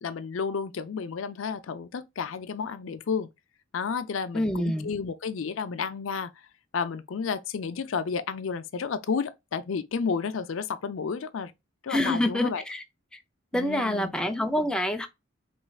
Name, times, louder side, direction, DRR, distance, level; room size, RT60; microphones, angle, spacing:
voice 1, 0.0-3.3 3.7-6.3 6.7-11.5 11.8-12.6 13.5-14.1, left 5 dB, 70° left, 0.4 m, -31 dB
voice 2, 4.3-4.9 11.9-12.8 13.5-15.1, left 1 dB, 5° left, 0.4 m, -26 dB
4.4 x 3.1 x 2.3 m
head